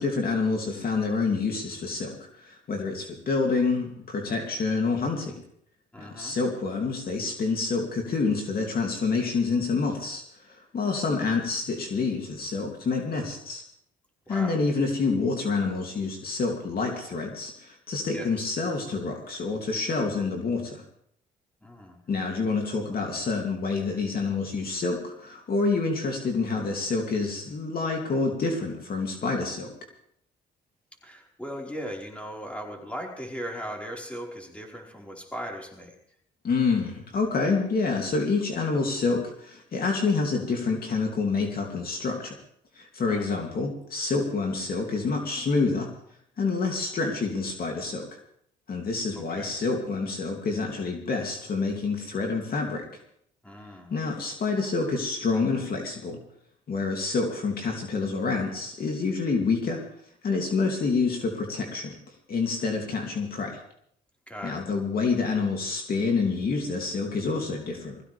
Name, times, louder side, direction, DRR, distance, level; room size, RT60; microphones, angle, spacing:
voice 1, 0.0-5.4 6.0-13.6 14.3-20.8 22.1-29.7 36.4-42.4 42.7-45.9 46.4-48.1 48.7-52.8 53.9-56.2 56.7-59.8 60.2-61.9 62.3-63.6 64.4-68.0, left 4 dB, 50° left, 1 dB, 2.9 m, -27 dB
voice 2, 5.9-6.4 14.3-14.6 18.1-18.5 21.6-22.0 31.0-36.0 43.1-43.2 49.1-49.5 53.4-54.0 64.3-64.6, equal, 5° left, -1 dB, 4.9 m, -38 dB
21.5 x 15.5 x 3.5 m, 0.68 s
supercardioid pair, 70°, 19 cm